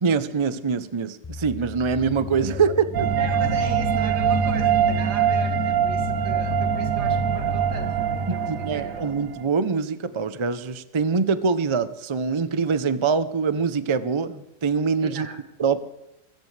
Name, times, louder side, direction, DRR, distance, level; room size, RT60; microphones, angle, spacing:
voice 1, 0.0-3.1 8.3-15.3 15.6-15.8, right 5 dB, 45° right, 13 dB, 0.3 m, -24 dB
sound 1, 1.2-9.0, left 8 dB, 30° left, 0.3 m, -32 dB
sound 2, 2.9-9.4, right 10 dB, 60° right, 1.0 m, -23 dB
voice 2, 3.1-9.0 15.0-15.4, right 3 dB, 80° right, 3 dB, 2.9 m, -38 dB
24.5 x 14.5 x 3.3 m, 0.90 s
omnidirectional pair, 1.7 m